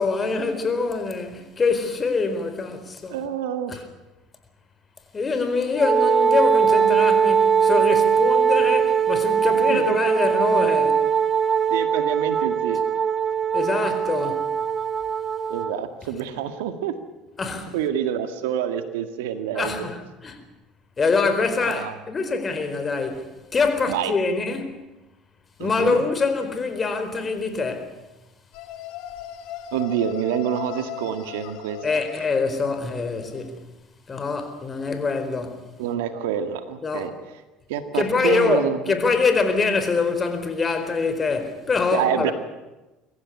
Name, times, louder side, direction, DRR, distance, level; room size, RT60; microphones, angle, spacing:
voice 1, 0.0-3.2 3.7-3.8 5.1-11.0 13.5-14.5 17.4-17.7 19.5-20.4 21.0-24.8 25.6-28.0 31.8-33.6 34.1-35.7 36.8-37.1 37.9-42.3, left 4 dB, 30° left, 4.2 m, -24 dB
voice 2, 3.1-3.8 9.7-10.0 11.7-12.8 15.5-16.9 17.7-19.9 21.6-22.0 23.9-24.1 25.6-26.0 29.7-31.8 35.8-37.1 37.7-39.0 41.9-42.3, right 9 dB, 80° right, 1.9 m, -27 dB
Wind instrument woodwind instrument, 5.8-15.8, right 7 dB, 30° right, 0.7 m, -20 dB
sound 1, 28.5-33.5, left 11 dB, 70° left, 2.0 m, -38 dB
24.0 x 15.0 x 9.8 m
hypercardioid pair, 75°, 0 cm